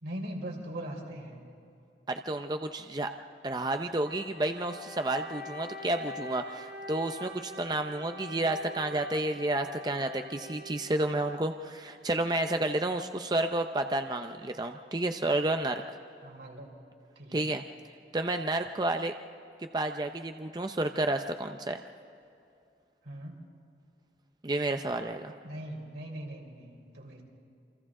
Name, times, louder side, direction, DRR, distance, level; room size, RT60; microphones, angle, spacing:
voice 1, 0.0-1.4 16.2-16.7 17.2-17.5 23.0-23.4 25.4-27.2, right 1 dB, 90° right, 0 dB, 3.9 m, -40 dB
voice 2, 2.1-3.1 3.4-16.0 17.3-17.6 18.1-19.1 19.6-21.8 24.4-25.4, right 2 dB, 25° right, 6 dB, 0.5 m, -31 dB
Wind instrument woodwind instrument, 4.0-11.6, left 1 dB, 45° right, 2.7 m, -45 dB
28.5 x 25.5 x 3.7 m, 2.6 s
head